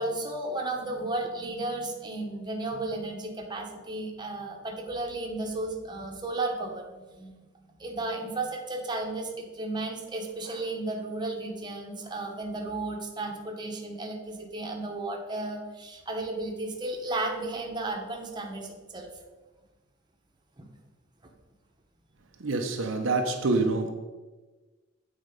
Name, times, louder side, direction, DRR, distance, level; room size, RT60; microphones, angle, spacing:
voice 1, 0.0-7.3 7.8-19.1 20.6-20.7, right 2 dB, 20° right, 1 dB, 1.1 m, -34 dB
voice 2, 22.4-23.9, right 3 dB, 65° right, 4 dB, 0.7 m, -26 dB
8.3 x 4.3 x 5.1 m, 1.2 s
head